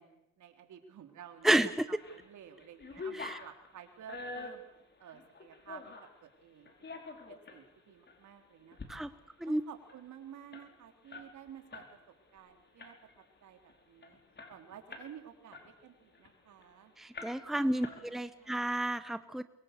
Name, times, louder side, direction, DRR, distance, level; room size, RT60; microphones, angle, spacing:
voice 1, 0.0-1.6 1.9-4.6 5.0-5.9 6.2-9.1 9.4-12.0 12.3-12.9 13.4-14.2 14.5-16.9 17.9-18.8, right 9 dB, 75° right, 5 dB, 3.8 m, -52 dB
voice 2, 1.4-1.9 3.1-3.4 8.9-9.1 9.4-9.6 17.0-19.4, right 1 dB, ahead, 12 dB, 1.0 m, -31 dB
sound 1, 1.7-2.2 2.6-6.2 6.7-7.6 8.1-8.2 8.6-8.9 9.2-9.3 9.6-11.9 12.2-12.4 12.8-13.2 13.7-13.8 14.0-15.2 15.5-16.7 17.1-17.6 17.8-18.5, left 3 dB, 35° left, 4.9 m, -46 dB
24.5 x 23.0 x 6.8 m, 0.81 s
cardioid pair, 90°, 30 cm